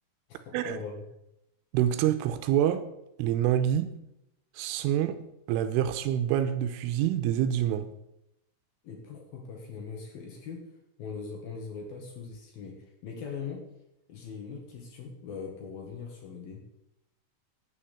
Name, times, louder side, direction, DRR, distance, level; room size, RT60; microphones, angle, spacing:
voice 1, 0.3-1.0 8.8-10.7 11.0-13.7 14.1-16.6, left 5 dB, 60° left, 2.9 m, -41 dB
voice 2, 1.7-2.9 3.2-4.0 4.6-5.2 5.5-7.9, right 11 dB, 85° right, 3.2 m, -26 dB
9.9 x 8.7 x 8.4 m
omnidirectional pair, 5.8 m